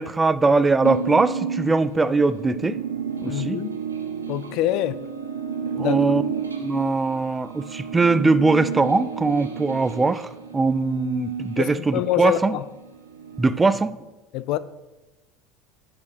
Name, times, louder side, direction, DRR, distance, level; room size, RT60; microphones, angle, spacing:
voice 1, 0.0-2.8 3.2-3.6 5.8-6.2 6.6-10.3 10.5-12.5 13.4-13.9, right 3 dB, 15° right, 0.4 m, -21 dB
sound 1, 0.8-12.2 12.6-13.7, right 7 dB, 85° right, 0.8 m, -32 dB
voice 2, 3.3-3.7 4.3-5.0 5.7-6.0 11.6-12.7 14.3-14.6, left 13 dB, 55° left, 0.3 m, -25 dB
8.1 x 5.0 x 6.3 m
figure-of-eight pair, 70°, 0 cm